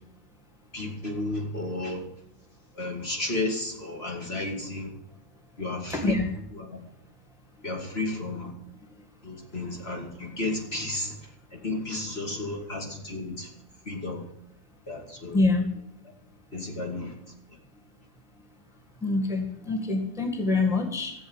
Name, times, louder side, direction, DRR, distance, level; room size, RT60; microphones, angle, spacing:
voice 1, 0.7-2.0 2.8-4.9 5.6-6.2 6.5-6.8 7.6-8.5 9.2-11.2 11.5-13.5 13.9-14.2 14.9-15.4 16.5-17.1, left 2 dB, 40° left, 1 dB, 2.8 m, -32 dB
voice 2, 5.9-6.3 10.6-10.8 12.3-12.4 15.3-15.8 19.0-21.1, left 3 dB, ahead, 2 dB, 1.7 m, -26 dB
15.5 x 7.8 x 8.1 m, 0.84 s
omnidirectional pair, 1.7 m